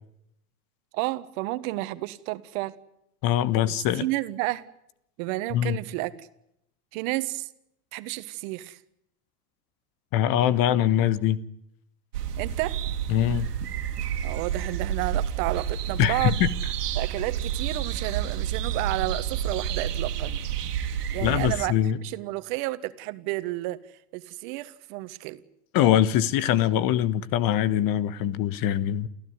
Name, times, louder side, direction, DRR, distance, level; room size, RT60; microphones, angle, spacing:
voice 1, 0.9-2.8 4.0-4.7 5.2-6.3 6.9-7.5 7.9-8.8 12.4-12.8 14.2-16.4 17.0-20.4 21.1-21.7 22.0-23.8 24.1-25.4, right 19 dB, 60° right, 1.6 m, -31 dB
voice 2, 3.2-4.1 5.5-5.8 10.1-11.4 13.1-13.5 16.0-16.5 21.2-22.0 25.7-29.1, left 11 dB, 50° left, 1.4 m, -23 dB
sound 1, 12.1-21.7, right 9 dB, 85° right, 2.2 m, -30 dB
29.0 x 15.0 x 9.7 m
hypercardioid pair, 105°, 46 cm